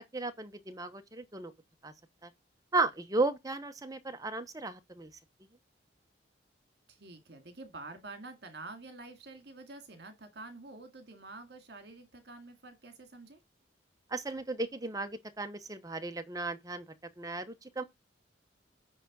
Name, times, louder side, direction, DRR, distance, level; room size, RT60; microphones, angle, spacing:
voice 1, 0.0-1.5 1.8-1.9 2.2-2.3 2.7-5.1 14.1-16.8 17.2-17.8, right 3 dB, 20° right, 0.8 m, -35 dB
voice 2, 6.9-13.4, right 3 dB, 60° right, 2.1 m, -48 dB
9.9 x 3.4 x 6.1 m
head